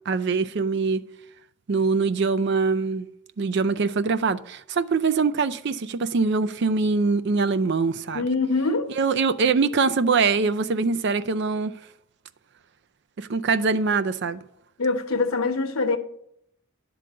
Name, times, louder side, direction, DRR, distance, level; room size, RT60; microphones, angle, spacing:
voice 1, 0.1-1.0 1.7-3.1 3.4-8.2 9.0-11.7 13.2-14.4, right 4 dB, 55° right, 0.4 m, -23 dB
voice 2, 8.1-8.9 14.8-16.0, left 3 dB, 80° left, 1.0 m, -24 dB
10.5 x 3.9 x 6.7 m
head